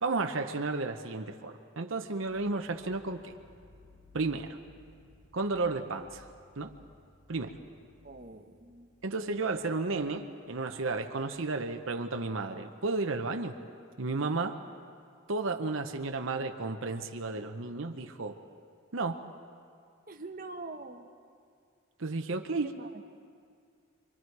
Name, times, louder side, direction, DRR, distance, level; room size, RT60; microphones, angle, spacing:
voice 1, 0.0-3.3 4.1-4.6 5.3-6.2 6.6-6.7 7.3-7.6 9.0-13.6 14.0-14.6 15.3-18.4 18.9-19.2 22.0-22.7, right 3 dB, 70° right, 5 dB, 0.9 m, -33 dB
sound 1, 2.1-11.9, left 2 dB, 85° left, 5.4 m, -61 dB
voice 2, 8.0-8.9 20.1-21.1 22.7-23.0, right 3 dB, 40° right, 4 dB, 1.0 m, -44 dB
28.0 x 24.0 x 4.7 m, 2.3 s
head